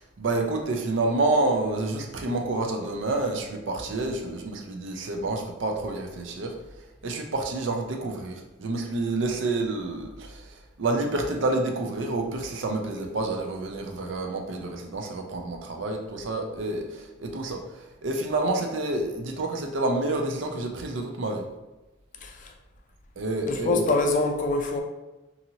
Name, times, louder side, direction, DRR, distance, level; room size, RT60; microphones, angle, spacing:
voice 1, 0.2-6.5 7.0-17.6 18.0-21.5 23.2-23.9, right 2 dB, 75° right, 0.5 m, -28 dB
voice 2, 22.2-22.5 23.5-24.8, left 2 dB, 40° left, 0.3 m, -25 dB
2.8 x 2.7 x 2.7 m
head